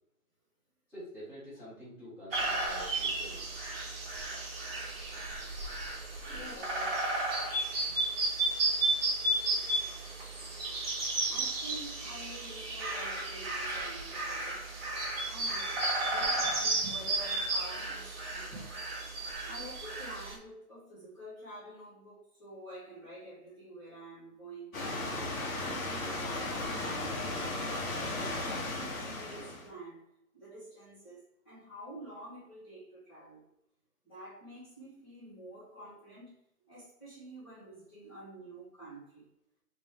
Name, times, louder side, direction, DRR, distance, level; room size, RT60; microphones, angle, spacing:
voice 1, 0.9-3.5, equal, 5° right, -18 dB, 1.5 m, -47 dB
sound 1, 2.3-20.3, right 2 dB, 40° right, 1.3 m, -33 dB
voice 2, 6.3-7.0 7.9-8.0 11.3-14.6 15.3-18.8 19.4-24.8 25.4-27.4 27.9-30.0 30.3-33.5 34.0-36.3 36.7-39.2, right 1 dB, 15° left, -14 dB, 1.4 m, -48 dB
sound 2, 24.7-29.7, left 2 dB, 60° left, 1.6 m, -35 dB
4.1 x 3.4 x 3.6 m, 0.80 s
hypercardioid pair, 175°, 45 cm